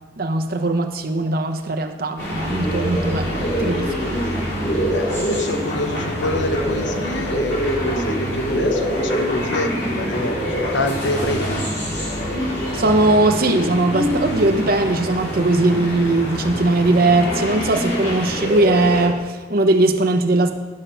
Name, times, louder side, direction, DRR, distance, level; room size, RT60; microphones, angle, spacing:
voice 1, 0.2-4.3 12.7-20.5, right 2 dB, 55° right, 6 dB, 0.8 m, -19 dB
sound 1, 2.2-19.1, equal, 65° left, 3.6 m, -24 dB
voice 2, 4.9-11.6, left 1 dB, 85° left, 7 dB, 0.9 m, -27 dB
11.5 x 5.7 x 5.5 m, 1.3 s
head